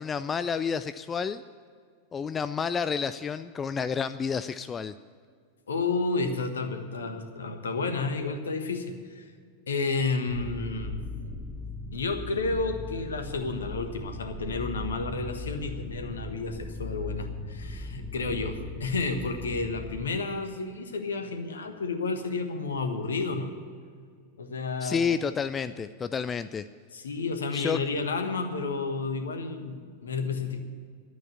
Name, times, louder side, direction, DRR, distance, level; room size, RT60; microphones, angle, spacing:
voice 1, 0.0-1.4 2.1-4.9 24.8-26.6 27.5-27.8, left 6 dB, 20° left, 12 dB, 0.4 m, -30 dB
voice 2, 5.7-9.2 9.7-11.0 11.9-23.5 24.4-25.1 26.9-30.6, left 3 dB, 70° left, 7 dB, 1.4 m, -31 dB
sound 1, 10.3-20.0, left 2 dB, 5° right, 1.6 m, -38 dB
12.0 x 9.2 x 8.6 m, 2.1 s
figure-of-eight pair, 90°, 0 cm